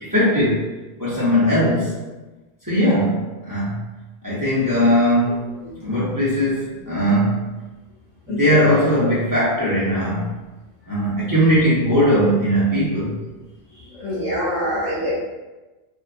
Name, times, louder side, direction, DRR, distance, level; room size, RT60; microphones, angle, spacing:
voice 1, 0.0-0.7 1.0-2.0 2.6-3.8 4.2-5.4 5.8-7.4 8.3-10.2 10.9-13.2, equal, 20° right, -10 dB, 0.7 m, -19 dB
voice 2, 8.3-8.7 14.0-15.2, equal, 45° left, -9 dB, 0.5 m, -25 dB
2.6 x 2.2 x 2.4 m, 1.1 s
omnidirectional pair, 1.0 m